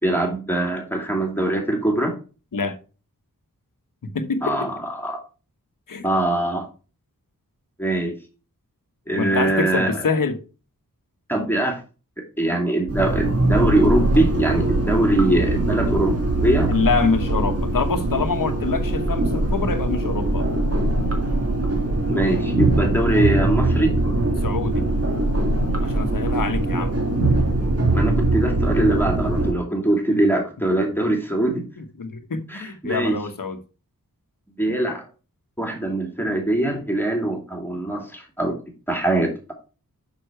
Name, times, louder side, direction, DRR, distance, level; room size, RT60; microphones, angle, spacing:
voice 1, 0.0-2.1 4.4-5.2 6.0-6.6 7.8-8.1 9.1-10.0 11.3-11.8 12.4-16.7 22.0-23.9 27.9-31.6 32.5-33.2 34.6-35.0 35.6-38.6 38.9-39.5, right 1 dB, 5° left, 2.5 m, -22 dB
voice 2, 4.0-4.5 5.9-6.1 9.2-10.4 16.7-20.4 24.4-24.8 25.8-27.0 30.1-30.2 31.8-33.6, left 4 dB, 65° left, 1.2 m, -25 dB
sound 1, 12.9-29.5, right 2 dB, 45° right, 2.2 m, -22 dB
6.5 x 6.0 x 4.5 m
wide cardioid pair, 55°, 35 cm